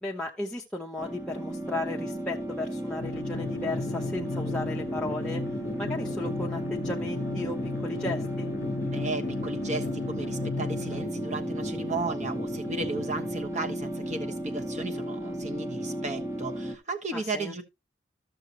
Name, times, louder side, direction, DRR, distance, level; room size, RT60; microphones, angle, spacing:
voice 1, 0.0-5.4 5.8-8.5 17.1-17.6, left 2 dB, 5° left, 0.8 m, -35 dB
sound 1, 1.0-16.8, right 1 dB, 15° right, 1.2 m, -34 dB
sound 2, 3.0-11.0, left 4 dB, 80° left, 0.6 m, -36 dB
sound 3, 3.3-13.3, left 2 dB, 35° left, 1.1 m, -39 dB
voice 2, 8.9-17.6, right 3 dB, 40° right, 1.3 m, -35 dB
13.5 x 6.7 x 2.9 m
head